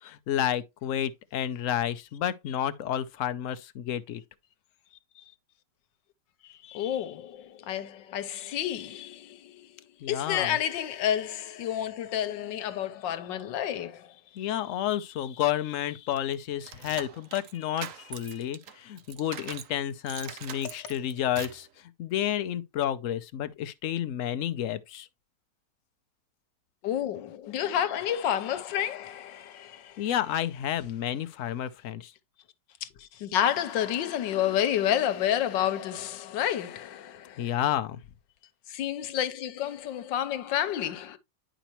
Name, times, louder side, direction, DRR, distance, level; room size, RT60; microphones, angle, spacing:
voice 1, 0.0-4.2 10.0-10.6 14.3-25.1 30.0-32.1 37.4-38.0, left 11 dB, 65° left, 0.8 m, -30 dB
voice 2, 6.4-9.7 10.1-14.1 18.3-18.5 20.6-20.7 26.8-30.1 32.8-37.6 38.7-41.2, left 10 dB, 85° left, 1.5 m, -30 dB
sound 1, 16.2-19.7 20.1-21.7, right 9 dB, 60° right, 0.9 m, -42 dB
10.0 x 5.0 x 2.9 m
omnidirectional pair, 1.9 m